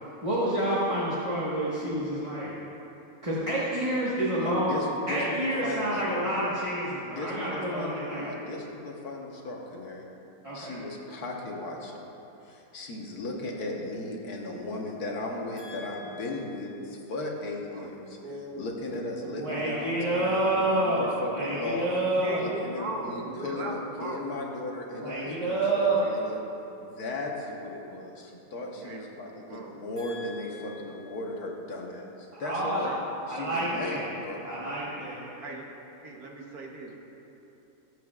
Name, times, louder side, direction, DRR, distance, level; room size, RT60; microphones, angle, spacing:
voice 1, 0.2-2.5 3.2-4.7 5.1-8.3 10.4-10.8 15.6-16.2 19.3-21.0 21.3-22.4 25.0-26.0 30.0-30.3 32.4-32.9 33.3-34.1 34.4-35.2, right 1 dB, 20° right, -9 dB, 1.3 m, -29 dB
voice 2, 4.4-6.3 7.1-10.1 10.5-11.9 12.4-18.2 18.6-21.9 22.4-26.4 26.8-32.9 33.3-34.5, left 2 dB, 75° left, -1 dB, 1.7 m, -36 dB
voice 3, 18.2-18.7 19.5-19.6 21.0-21.2 22.2-24.3 26.0-26.1 28.7-29.0 29.5-29.7 32.8-33.0 33.5-33.6 35.4-35.6 36.0-37.0, right 2 dB, 70° right, 0 dB, 1.5 m, -38 dB
20.0 x 7.9 x 2.4 m, 3.0 s
omnidirectional pair, 1.7 m